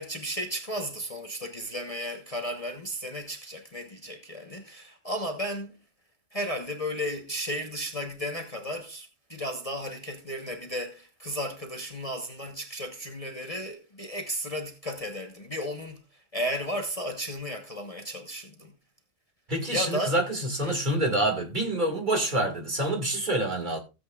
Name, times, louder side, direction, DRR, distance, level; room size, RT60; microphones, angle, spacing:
voice 1, 0.0-5.8 6.3-16.0 16.3-18.7 19.7-20.2 20.6-20.8, equal, 30° left, 1.1 m, -34 dB
voice 2, 19.5-23.8, right 1 dB, 35° right, 2.3 m, -27 dB
16.5 x 7.9 x 2.4 m
omnidirectional pair, 1.3 m